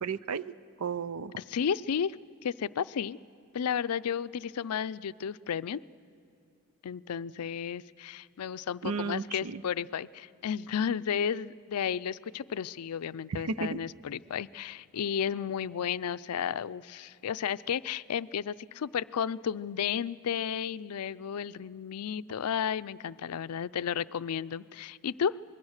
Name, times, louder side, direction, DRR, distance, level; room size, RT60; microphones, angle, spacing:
voice 1, 0.0-1.4 8.8-9.6 13.3-13.8, right 5 dB, 70° right, 16 dB, 0.5 m, -34 dB
voice 2, 1.4-2.2 2.4-3.2 3.5-5.8 6.8-25.4, left 7 dB, 85° left, 16 dB, 0.4 m, -33 dB
25.0 x 21.5 x 6.5 m, 2.6 s
head